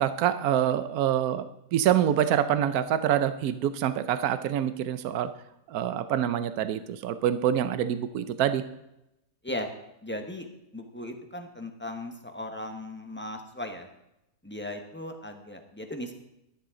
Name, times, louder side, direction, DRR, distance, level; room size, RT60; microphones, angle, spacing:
voice 1, 0.0-1.4 1.7-5.3 5.7-8.6, right 10 dB, 80° right, 12 dB, 1.2 m, -26 dB
voice 2, 10.0-13.9 14.4-16.2, left 1 dB, 10° left, 4 dB, 1.3 m, -37 dB
13.0 x 12.0 x 3.8 m, 0.86 s
omnidirectional pair, 1.6 m